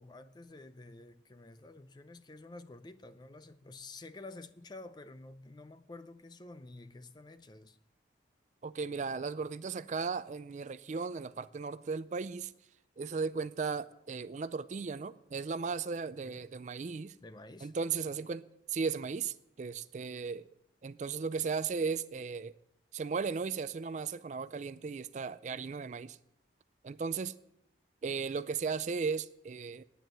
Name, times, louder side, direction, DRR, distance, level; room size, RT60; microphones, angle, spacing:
voice 1, 0.0-7.8 16.2-16.4 17.2-17.7, left 2 dB, 25° left, 0.5 m, -50 dB
voice 2, 8.6-12.5 13.0-17.1 17.6-18.4 18.7-20.5 20.8-22.5 22.9-26.2 26.8-27.3 28.0-29.8, right 5 dB, 40° right, 0.4 m, -36 dB
10.5 x 9.2 x 7.8 m
head